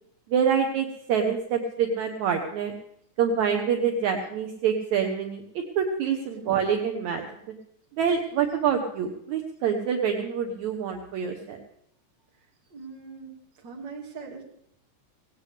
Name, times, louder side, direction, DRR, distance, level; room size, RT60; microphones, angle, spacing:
voice 1, 0.3-2.7 3.2-5.4 5.8-7.2 8.0-11.6, right 7 dB, 70° right, 4 dB, 2.1 m, -26 dB
voice 2, 12.7-14.5, right 4 dB, 40° right, -1 dB, 2.4 m, -41 dB
18.0 x 17.0 x 3.3 m, 0.72 s
omnidirectional pair, 3.7 m